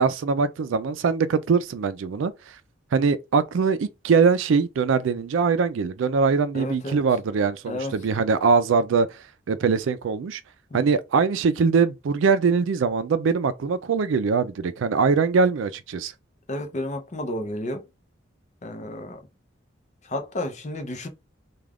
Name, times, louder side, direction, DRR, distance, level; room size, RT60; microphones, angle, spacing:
voice 1, 0.0-2.3 2.9-9.1 9.5-10.4 10.7-16.1, right 5 dB, 80° right, 0.4 m, -22 dB
voice 2, 6.5-7.0 7.7-7.9 10.7-10.9 16.5-17.8 18.6-19.2 20.0-21.1, left 1 dB, 35° left, 0.6 m, -31 dB
2.4 x 2.3 x 3.3 m
head